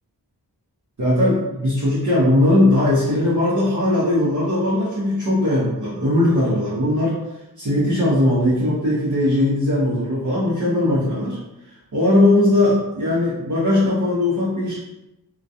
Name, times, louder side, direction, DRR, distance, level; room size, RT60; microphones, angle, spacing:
voice 1, 1.0-7.2 7.6-11.4 11.9-14.8, left 1 dB, 45° right, -10 dB, 0.8 m, -19 dB
2.3 x 2.2 x 2.7 m, 0.93 s
wide cardioid pair, 55°, 41 cm